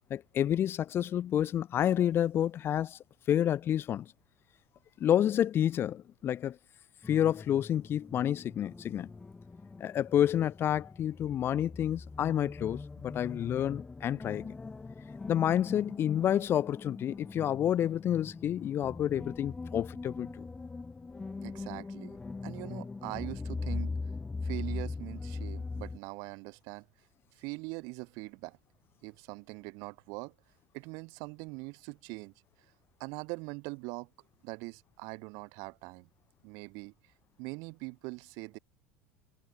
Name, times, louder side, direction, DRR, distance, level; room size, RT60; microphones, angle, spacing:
voice 1, 0.1-3.0 3.3-4.1 5.0-6.6 7.1-9.1 9.8-14.6 15.3-20.4, left 10 dB, 35° left, 0.4 m, -29 dB
sound 1, 7.0-26.0, left 3 dB, 15° left, 2.2 m, -41 dB
voice 2, 21.4-23.9 24.4-26.9 27.3-28.6 29.0-30.3 30.7-32.3 33.0-34.1 34.4-36.1 36.4-36.9 37.4-38.6, right 30 dB, 65° right, 3.3 m, -42 dB
supercardioid pair, 105°, 6 cm